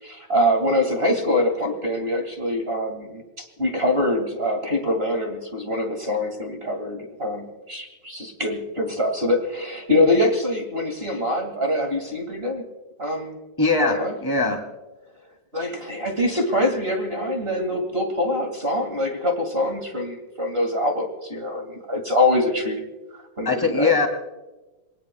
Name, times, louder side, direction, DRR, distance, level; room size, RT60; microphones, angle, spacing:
voice 1, 0.0-12.6 13.0-13.4 13.8-14.1 15.5-22.8 23.1-23.9, left 1 dB, 25° right, 3 dB, 1.2 m, -24 dB
voice 2, 13.6-14.6 23.4-24.1, left 3 dB, 5° left, 3 dB, 1.8 m, -21 dB
27.0 x 22.5 x 2.3 m, 1.1 s
omnidirectional pair, 4.5 m